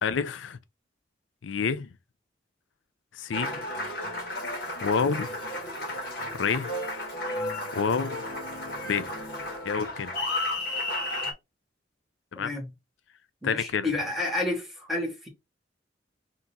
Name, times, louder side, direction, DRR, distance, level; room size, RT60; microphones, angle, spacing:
voice 1, 0.0-0.6 1.4-1.9 3.1-3.7 4.8-5.3 6.3-6.7 7.7-8.2 8.8-9.1 9.6-10.1 12.3-12.6 13.4-13.9, left 6 dB, 90° left, 0.5 m, -28 dB
Applause, 3.3-11.3, left 1 dB, 55° left, 1.5 m, -33 dB
voice 2, 13.4-15.3, left 2 dB, ahead, 1.4 m, -30 dB
3.7 x 2.8 x 4.0 m
head